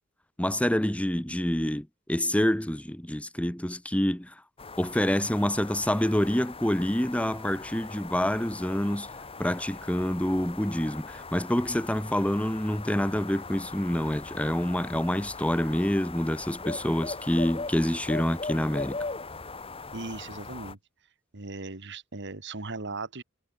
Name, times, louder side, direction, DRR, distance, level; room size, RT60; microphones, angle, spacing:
voice 1, 0.4-4.3 4.8-9.1 9.4-19.0, left 1 dB, 5° left, 1.0 m, -27 dB
sound 1, 4.6-20.7, left 3 dB, 30° left, 2.2 m, -40 dB
voice 2, 19.9-20.8 21.3-23.2, right 3 dB, 60° right, 1.9 m, -38 dB
head